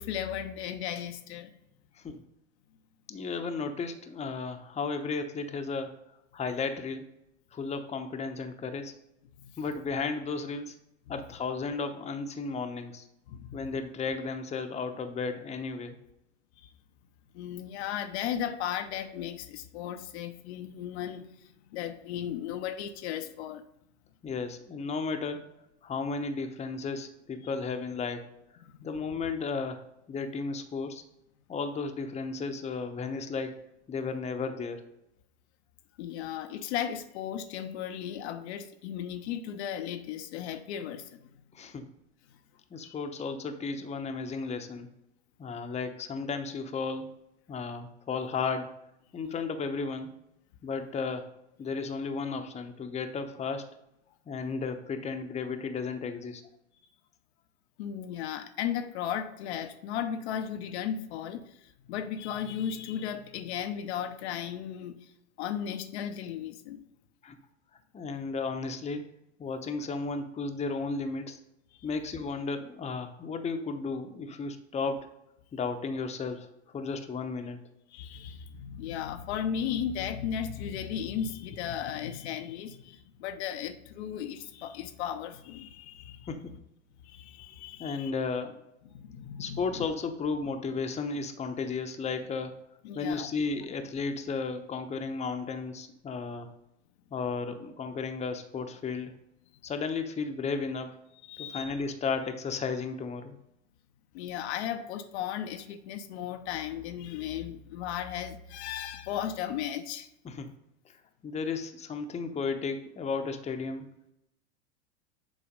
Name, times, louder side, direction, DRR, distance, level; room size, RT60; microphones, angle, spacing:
voice 1, 0.0-1.5 9.4-9.5 13.3-13.6 16.6-16.7 17.3-21.3 21.7-23.6 27.4-27.5 28.6-28.8 36.0-41.1 42.8-42.9 57.8-65.1 65.4-66.9 71.7-71.9 77.9-86.3 87.0-88.1 88.9-89.9 92.8-93.3 101.2-101.8 104.1-110.1, left 9 dB, 65° left, 0.7 m, -35 dB
voice 2, 3.1-6.0 6.3-7.1 7.5-8.9 9.6-10.7 11.1-13.1 13.5-16.0 24.2-25.5 25.8-28.3 28.8-31.0 31.5-33.6 33.9-34.8 41.5-41.9 42.7-44.9 45.4-47.1 47.5-48.7 49.1-50.2 50.6-51.3 51.6-53.7 54.3-56.4 67.2-67.4 67.9-69.0 69.4-71.4 71.8-75.1 75.5-77.6 86.3-86.6 87.8-88.5 89.4-92.5 92.9-96.5 97.1-99.1 99.6-101.0 101.4-103.4 110.2-110.5 111.2-113.9, left 4 dB, 20° left, 0.8 m, -34 dB
7.2 x 4.2 x 5.2 m
hypercardioid pair, 100°, 36 cm